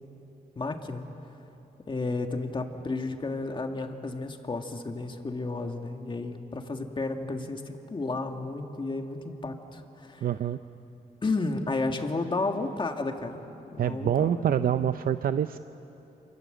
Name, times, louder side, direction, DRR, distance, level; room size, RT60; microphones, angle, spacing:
voice 1, 0.6-1.1 1.9-10.3 11.2-13.4 13.7-14.9, left 3 dB, 30° left, 4 dB, 2.0 m, -32 dB
voice 2, 10.2-10.6 13.8-15.6, right 10 dB, 70° right, 11 dB, 0.6 m, -26 dB
27.5 x 27.0 x 7.9 m, 3.0 s
wide cardioid pair, 115°, 16 cm